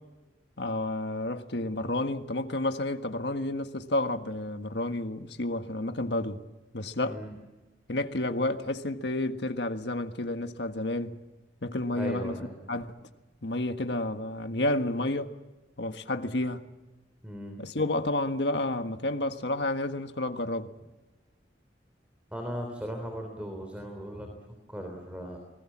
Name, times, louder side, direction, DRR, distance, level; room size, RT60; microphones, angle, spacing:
voice 1, 0.6-6.4 6.7-7.2 7.9-11.1 11.6-12.3 12.7-12.9 13.4-15.3 15.8-16.6 17.6-20.7, left 2 dB, 70° left, 1.6 m, -30 dB
voice 2, 7.0-7.4 11.9-12.6 17.2-17.6 22.3-25.4, equal, 5° right, 3.4 m, -38 dB
28.5 x 20.5 x 7.5 m
head